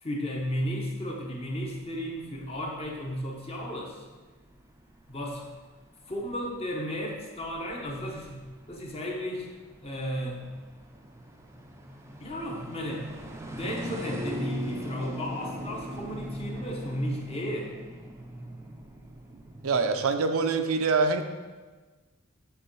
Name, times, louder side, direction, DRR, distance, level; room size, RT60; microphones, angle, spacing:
voice 1, 0.0-4.1 5.1-5.4 6.1-9.5 9.8-10.4 12.2-13.1 13.5-17.7, equal, 25° left, 0 dB, 1.0 m, -34 dB
sound 1, 1.2-20.0, equal, 10° right, 0.5 m, -41 dB
voice 2, 19.6-21.2, right 4 dB, 70° right, 7 dB, 0.5 m, -24 dB
9.0 x 3.8 x 4.6 m, 1.3 s
head